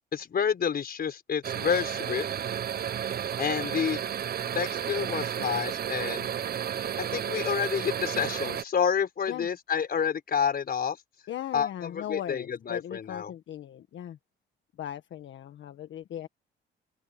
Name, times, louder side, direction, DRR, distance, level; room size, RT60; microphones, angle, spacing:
voice 1, 0.1-2.2 3.4-4.0 4.5-6.3 7.0-11.0 11.5-13.3, left 7 dB, 50° left, 4.9 m, -29 dB
sound 1, 1.4-8.6, right 9 dB, 50° right, 0.9 m, -32 dB
voice 2, 11.3-14.2 14.8-16.3, left 11 dB, 70° left, 1.6 m, -38 dB
open air
cardioid pair, 90°, 20 cm